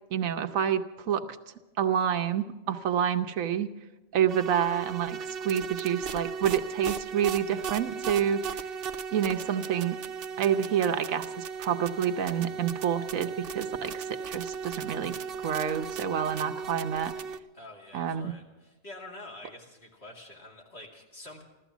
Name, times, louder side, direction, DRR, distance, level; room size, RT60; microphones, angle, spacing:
voice 1, 0.1-1.3 1.8-3.7 4.1-8.7 9.1-10.0 10.4-17.1 17.9-18.4, right 9 dB, 85° right, 8 dB, 1.2 m, -28 dB
sound 1, 4.3-17.4, right 6 dB, 55° right, 0.7 m, -36 dB
voice 2, 17.5-21.4, left 2 dB, 50° left, -1 dB, 2.8 m, -47 dB
14.5 x 13.0 x 7.2 m, 1.1 s
omnidirectional pair, 1.4 m